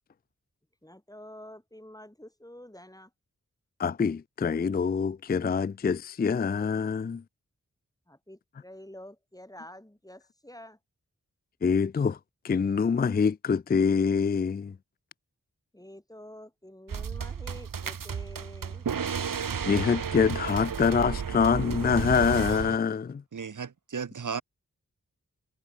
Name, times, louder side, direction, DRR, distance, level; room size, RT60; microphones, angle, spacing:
voice 1, 0.8-3.1 8.1-10.8 15.7-18.9, left 1 dB, 10° left, 7.9 m, -48 dB
voice 2, 3.8-7.2 11.6-12.2 12.4-14.7 19.7-23.2, left 6 dB, 30° left, 0.4 m, -25 dB
sound 1, 16.9-22.8, right 7 dB, 90° right, 1.2 m, -33 dB
voice 3, 23.3-24.4, right 6 dB, 70° right, 1.2 m, -35 dB
wide cardioid pair, 50°, 32 cm